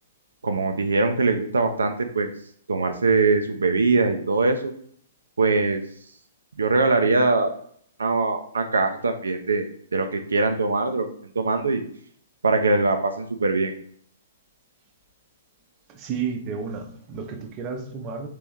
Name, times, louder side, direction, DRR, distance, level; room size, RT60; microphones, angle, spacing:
voice 1, 0.4-2.3 2.7-4.7 5.4-5.8 6.6-7.5 8.0-9.7 9.9-11.1 11.4-11.8 12.4-13.7, right 3 dB, 80° right, 6 dB, 0.4 m, -22 dB
voice 2, 15.9-18.3, right 6 dB, 30° right, 5 dB, 0.6 m, -32 dB
3.4 x 3.0 x 3.5 m, 0.62 s
figure-of-eight pair, 120°, 0 cm